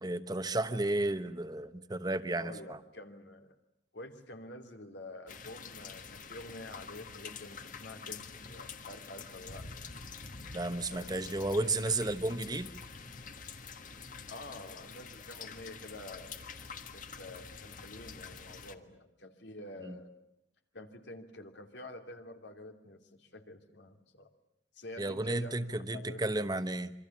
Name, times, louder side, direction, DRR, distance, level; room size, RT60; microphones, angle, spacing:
voice 1, 0.0-2.8 10.5-12.7 19.8-20.0 25.0-26.9, right 2 dB, 25° right, 10 dB, 1.1 m, -33 dB
voice 2, 1.0-1.3 2.3-3.5 3.9-9.6 10.9-11.1 14.3-16.4 16.9-20.1 20.7-24.3 24.7-25.5 25.9-26.2, left 1 dB, 85° left, 5 dB, 2.9 m, -48 dB
sound 1, 5.3-18.7, left 5 dB, 50° left, 1.6 m, -47 dB
27.0 x 24.5 x 7.3 m, 0.83 s
head